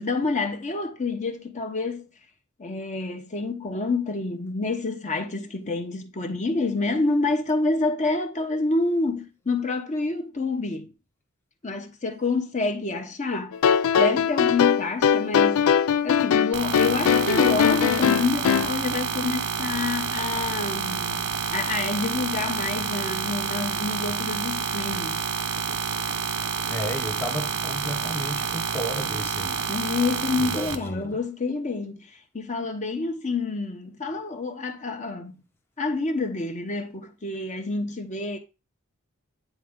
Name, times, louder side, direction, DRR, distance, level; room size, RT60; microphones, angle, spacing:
voice 1, 0.0-2.1 2.6-10.9 11.6-13.6 14.0-15.7 16.0-25.3 29.7-35.4 35.8-38.4, left 3 dB, 35° left, 1.0 m, -28 dB
sound 1, 13.5-18.7, left 7 dB, 80° left, 0.4 m, -21 dB
sound 2, 16.5-30.7, right 6 dB, 75° right, 0.9 m, -29 dB
voice 2, 26.6-29.6 30.4-31.2, equal, 10° left, 0.8 m, -33 dB
9.2 x 4.2 x 3.7 m
head